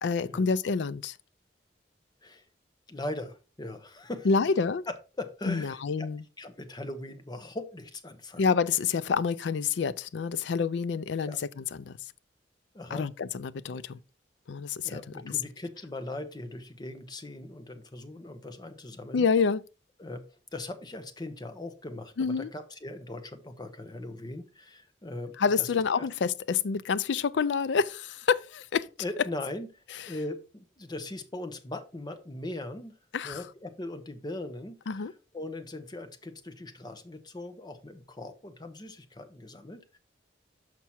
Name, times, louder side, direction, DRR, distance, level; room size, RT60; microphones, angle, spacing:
voice 1, 0.0-1.2 4.2-4.9 5.5-6.2 8.4-12.0 12.9-14.0 14.5-15.0 19.1-19.6 22.2-22.5 25.4-28.9 30.0-30.1 33.1-33.4 34.9-35.1, left 5 dB, 75° left, 0.4 m, -28 dB
voice 2, 2.9-4.3 5.2-6.1 6.4-8.4 11.2-11.4 12.7-13.1 14.8-19.2 20.0-26.1 29.0-32.9 33.2-35.1 35.3-40.0, left 1 dB, 25° left, 0.9 m, -40 dB
6.0 x 5.7 x 4.3 m
head